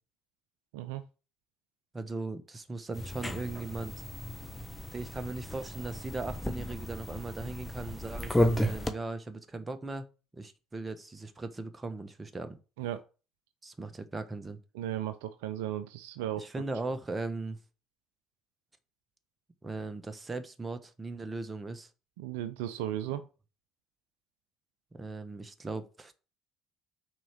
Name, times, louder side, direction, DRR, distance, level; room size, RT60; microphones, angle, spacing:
voice 1, 1.9-4.0 4.9-10.1 10.3-12.6 13.6-14.6 16.4-17.6 19.6-21.9 24.9-26.1, right 3 dB, 20° right, 1.2 m, -38 dB
sound 1, 2.9-8.9, left 1 dB, 10° left, 1.1 m, -33 dB
voice 2, 14.7-16.5 22.2-23.2, right 12 dB, 75° right, 0.5 m, -35 dB
6.1 x 4.4 x 6.1 m
hypercardioid pair, 55°, 0 cm